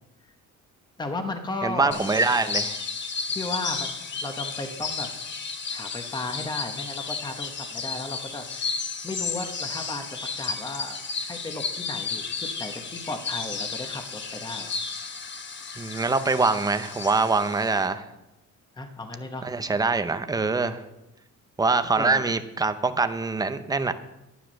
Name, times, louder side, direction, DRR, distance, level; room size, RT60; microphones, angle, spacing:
voice 1, 1.0-2.1 3.3-3.9 4.2-5.1 5.7-14.7 18.8-19.4 22.0-22.3, left 2 dB, 15° left, 1.1 m, -35 dB
voice 2, 1.6-2.9 15.8-18.1 19.4-20.8 21.6-23.9, right 3 dB, 10° right, 0.6 m, -24 dB
sound 1, 1.9-17.9, left 5 dB, 35° left, 1.3 m, -33 dB
11.5 x 10.5 x 6.4 m
cardioid pair, 160°, 31 cm